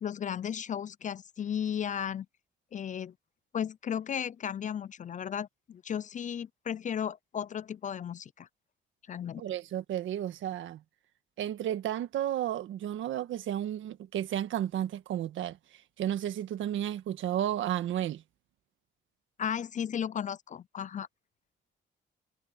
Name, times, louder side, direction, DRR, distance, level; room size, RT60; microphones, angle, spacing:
voice 1, 0.0-2.3 2.7-3.1 3.5-8.5 9.1-9.4 19.4-21.1, left 8 dB, 40° left, 0.4 m, -35 dB
voice 2, 9.4-10.8 11.4-15.6 16.0-18.2, right 11 dB, 75° right, 1.6 m, -32 dB
cardioid pair, 90°, 20 cm